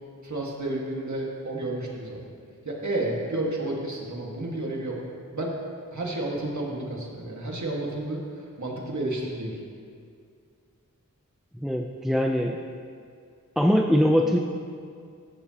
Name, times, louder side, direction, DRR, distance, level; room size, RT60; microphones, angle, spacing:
voice 1, 0.2-2.2 2.7-5.0 5.3-5.5 5.9-8.2 8.6-9.6, right 2 dB, 60° right, -2 dB, 1.8 m, -31 dB
voice 2, 11.6-12.6 13.6-14.4, equal, ahead, 2 dB, 0.5 m, -22 dB
15.0 x 7.2 x 2.9 m, 2.3 s
wide cardioid pair, 40°, 33 cm